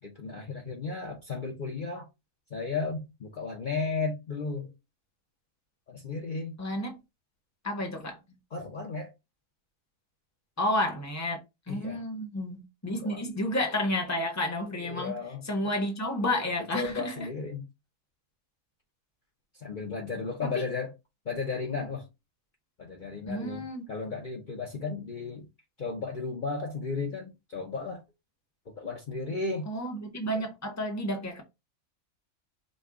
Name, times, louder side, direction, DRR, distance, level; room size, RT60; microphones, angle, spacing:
voice 1, 0.0-2.1 2.5-4.7 5.9-6.6 8.5-9.1 11.7-12.0 13.0-13.2 14.8-15.4 16.7-17.7 19.5-20.9 21.2-22.1 22.8-25.5 25.8-28.0 28.8-29.7, left 4 dB, 45° left, 0.8 m, -34 dB
voice 2, 6.6-7.0 7.6-8.2 10.6-11.4 11.7-15.2 15.4-17.3 20.4-20.7 23.3-23.9 29.7-31.4, left 1 dB, 15° left, 0.8 m, -31 dB
5.2 x 2.3 x 3.6 m
omnidirectional pair, 1.4 m